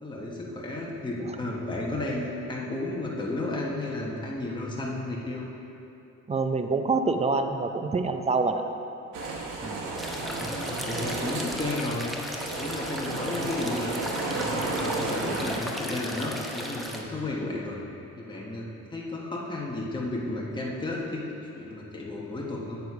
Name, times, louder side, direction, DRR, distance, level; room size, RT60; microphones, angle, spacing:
voice 1, 0.0-5.5 10.2-12.3 12.6-13.9 14.2-17.8 18.2-21.2 21.6-22.8, left 2 dB, 15° left, -3 dB, 1.2 m, -33 dB
voice 2, 6.3-8.6 9.6-9.8, right 4 dB, 20° right, 7 dB, 0.6 m, -26 dB
sound 1, 9.1-15.5, right 3 dB, 85° right, 1.2 m, -33 dB
sound 2, 10.0-17.0, equal, ahead, 0.9 m, -36 dB
8.3 x 6.7 x 4.8 m, 2.8 s
cardioid pair, 90°, 30 cm